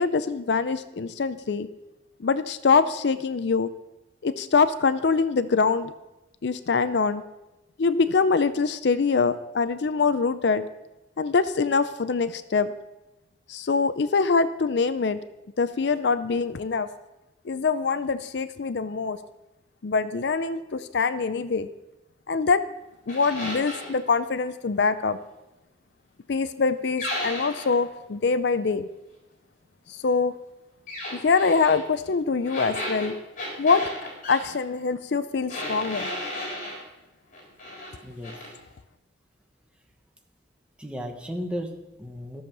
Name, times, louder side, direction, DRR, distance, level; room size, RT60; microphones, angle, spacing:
voice 1, 0.0-1.7 2.2-3.7 4.2-5.9 6.4-7.2 7.8-10.6 11.2-12.7 13.5-15.2 15.6-16.9 17.5-19.2 19.8-21.7 22.3-22.6 23.1-25.2 26.3-28.9 29.9-30.4 31.1-33.1 33.6-33.9 34.3-36.1, left 4 dB, 65° left, 13 dB, 0.5 m, -24 dB
sound 1, 23.1-23.9 27.0-27.8 30.9-31.8 32.4-34.4 35.5-36.8 37.3-37.9 38.2-38.5, left 1 dB, 45° left, 4.0 m, -34 dB
voice 2, 38.0-38.3 40.8-42.4, equal, 5° right, 2 dB, 1.2 m, -34 dB
14.0 x 7.1 x 6.0 m, 1.0 s
head